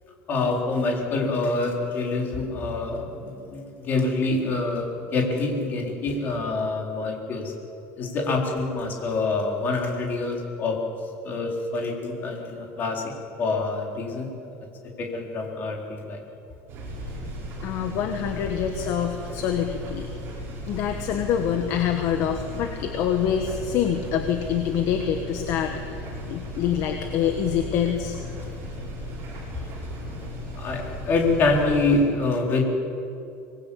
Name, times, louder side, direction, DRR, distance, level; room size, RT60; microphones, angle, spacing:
voice 1, 0.3-7.5 8.0-10.8 11.2-13.0 13.4-14.5 15.0-16.2 29.5-29.7 30.5-32.7, left 3 dB, 30° left, 0 dB, 4.1 m, -26 dB
sound 1, 16.7-32.0, left 1 dB, 35° right, 7.3 m, -36 dB
voice 2, 17.6-20.1 20.7-28.2, left 8 dB, 45° left, 5 dB, 1.5 m, -26 dB
25.0 x 20.5 x 8.6 m, 2.6 s
cardioid pair, 180°, 7 cm